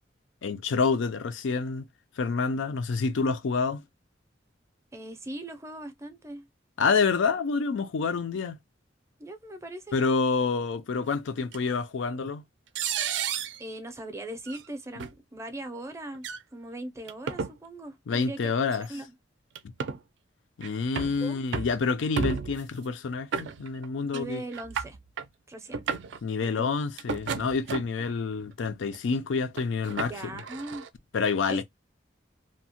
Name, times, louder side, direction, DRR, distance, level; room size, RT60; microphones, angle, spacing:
voice 1, 0.4-1.9 2.2-3.8 6.8-8.6 9.9-12.4 18.1-18.9 19.6-19.7 20.6-24.4 26.2-30.4 31.1-31.6, left 4 dB, 90° left, 0.4 m, -28 dB
voice 2, 4.9-6.5 9.2-10.0 13.6-16.3 16.5-18.5 18.8-19.1 21.2-21.4 24.1-25.0 25.5-25.8 26.4-26.7 30.1-30.8 31.5-31.6, right 1 dB, 15° right, 0.5 m, -39 dB
sound 1, 11.5-11.6 12.7-13.6 14.5-14.6 15.0-15.1 16.1-16.4 17.1-17.5 18.7-18.8 19.5-20.0 20.6-21.2 21.5-21.8 22.2-22.7 23.3-23.9 24.1-24.2 24.5-25.3 25.7-26.2 27.0-28.0 28.6-29.0 29.6-30.9, right 6 dB, 70° right, 0.4 m, -32 dB
2.7 x 2.0 x 2.7 m
head